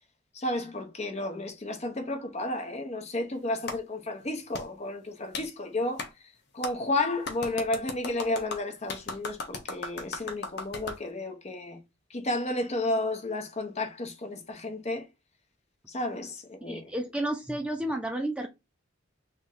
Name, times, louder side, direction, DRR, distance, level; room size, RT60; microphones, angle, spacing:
voice 1, 0.3-6.1 6.5-11.8 12.1-15.1 15.9-16.9, left 2 dB, 35° left, 0.9 m, -32 dB
Clapping, 3.7-3.8 4.5-4.7 5.3-5.5 6.0-6.1 6.6-6.7 7.2-11.0, left 3 dB, 60° left, 1.0 m, -36 dB
voice 2, 16.7-18.5, right 1 dB, 5° right, 0.5 m, -31 dB
3.5 x 3.0 x 3.8 m
head